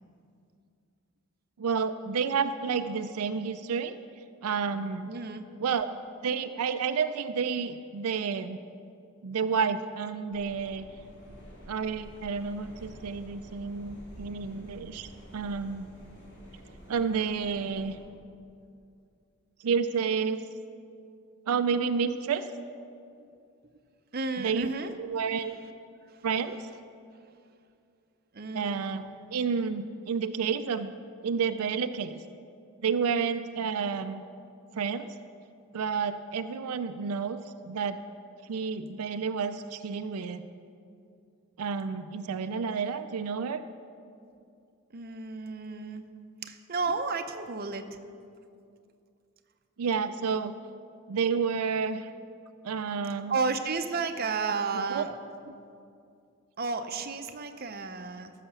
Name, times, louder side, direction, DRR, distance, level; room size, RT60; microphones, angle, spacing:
voice 1, 1.6-4.0 4.4-5.1 5.6-5.9 6.2-8.6 9.2-10.8 11.7-15.9 16.9-18.0 19.6-20.4 21.5-22.5 24.4-24.7 25.0-25.6 26.2-26.7 28.5-30.9 31.2-32.2 32.8-34.2 34.7-35.1 35.7-38.0 38.4-40.4 41.6-43.6 49.8-50.6 51.1-52.1 52.6-53.4 54.9-55.1, right 6 dB, 85° right, 9 dB, 0.4 m, -30 dB
voice 2, 5.1-5.4 24.1-24.9 26.1-26.3 28.3-29.0 44.9-46.1 46.4-47.8 53.1-55.1 56.6-58.3, right 4 dB, 45° right, 7 dB, 0.6 m, -32 dB
sound 1, 10.3-18.0, equal, 50° left, 2.8 m, -49 dB
14.5 x 5.8 x 6.8 m, 2.4 s
head